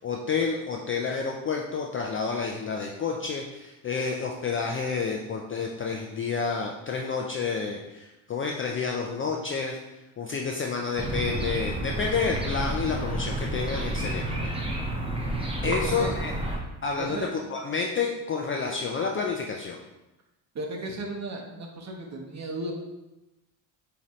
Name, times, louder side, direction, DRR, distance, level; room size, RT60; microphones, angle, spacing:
voice 1, 0.0-9.8 10.2-14.5 15.6-16.3 16.8-17.2 17.5-19.8, left 5 dB, 30° left, 0 dB, 0.3 m, -29 dB
sound 1, 11.0-16.6, right 1 dB, 10° right, 0.7 m, -30 dB
voice 2, 15.7-16.1 17.0-17.3 20.5-22.7, right 2 dB, 35° right, 1 dB, 1.0 m, -34 dB
5.1 x 2.9 x 3.1 m, 0.98 s
supercardioid pair, 90°, 46 cm